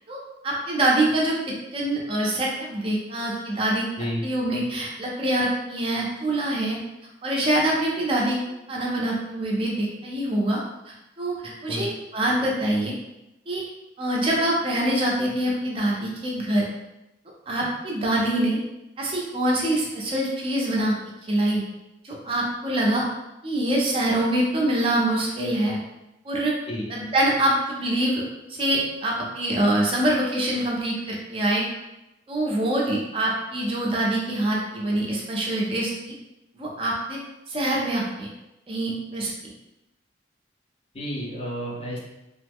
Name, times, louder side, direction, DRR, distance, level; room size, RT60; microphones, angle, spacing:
voice 1, 0.4-3.9 4.2-6.8 7.2-8.4 8.7-10.6 10.9-11.4 11.6-12.9 13.5-13.6 14.0-16.7 17.5-18.6 19.0-20.9 21.3-21.6 22.0-23.0 23.4-25.8 26.2-26.5 26.9-28.2 28.5-31.6 32.3-36.1 36.5-37.2 37.5-38.3 38.7-39.3, right 1 dB, 30° right, -3 dB, 0.5 m, -24 dB
voice 2, 40.9-42.0, equal, 30° left, -3 dB, 0.5 m, -30 dB
3.0 x 2.0 x 3.5 m, 0.92 s
head